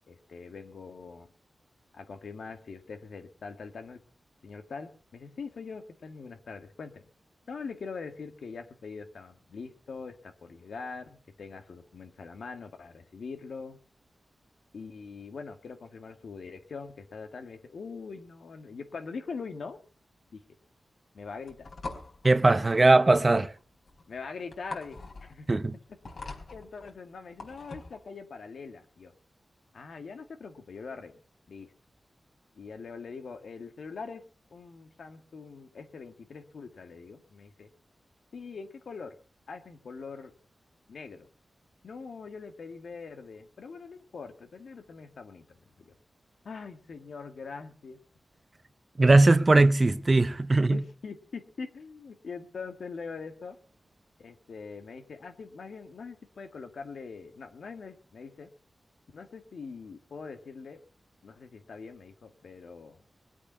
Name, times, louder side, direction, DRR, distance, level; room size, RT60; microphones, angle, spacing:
voice 1, 0.1-1.3 1.9-4.0 4.4-7.0 7.5-13.8 14.7-19.8 20.3-20.4 21.1-21.7 24.1-25.5 26.5-29.1 29.7-31.2 31.5-31.7 32.6-34.2 34.5-37.7 38.3-39.2 39.5-40.3 40.9-41.3 41.8-45.9 46.4-48.0 50.6-53.6 54.2-58.5 59.1-60.8 61.2-63.0, left 5 dB, 80° left, 1.9 m, -43 dB
sound 1, 21.5-28.0, left 3 dB, 60° left, 4.4 m, -44 dB
voice 2, 22.2-23.5 25.5-25.8 49.0-50.8, right 2 dB, 30° right, 0.8 m, -20 dB
21.5 x 8.5 x 5.8 m
wide cardioid pair, 95°, 0 cm